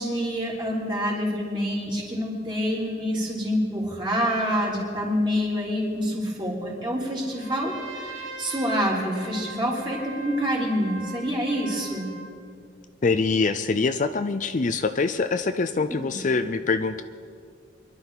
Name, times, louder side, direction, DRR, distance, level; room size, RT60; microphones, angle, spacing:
voice 1, 0.0-12.1, equal, 25° right, -4 dB, 3.5 m, -27 dB
Trumpet, 7.3-12.3, right 1 dB, 90° right, 4.7 m, -40 dB
voice 2, 13.0-17.0, left 4 dB, 40° left, 9 dB, 0.5 m, -24 dB
25.5 x 11.5 x 4.0 m, 2.2 s
head